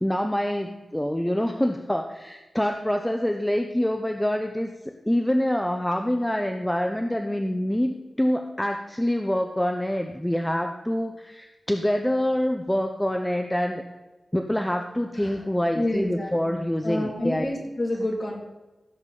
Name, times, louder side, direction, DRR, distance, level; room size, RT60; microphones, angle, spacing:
voice 1, 0.0-13.8 14.3-17.5, equal, 10° left, 5 dB, 0.7 m, -26 dB
voice 2, 15.1-15.5 15.7-18.4, left 1 dB, 35° left, -1 dB, 2.8 m, -29 dB
16.0 x 7.3 x 4.1 m, 1.1 s
wide cardioid pair, 105°, 0 cm